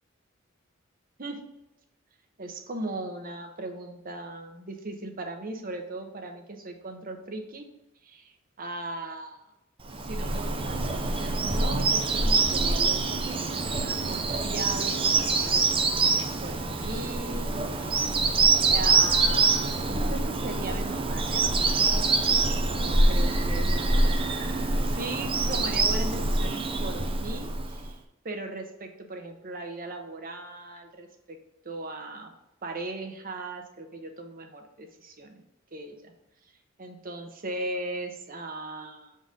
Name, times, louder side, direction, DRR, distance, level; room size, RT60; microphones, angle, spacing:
voice 1, 2.4-7.7 8.0-9.4 10.0-17.9 18.7-22.4 22.6-31.4 31.6-32.3 32.6-35.4 35.7-36.1 36.8-39.2, right 2 dB, 45° right, 5 dB, 1.0 m, -38 dB
Bird vocalization bird call bird song, 9.9-27.9, right 3 dB, 25° right, 0.6 m, -25 dB
7.0 x 3.9 x 3.8 m, 0.94 s
head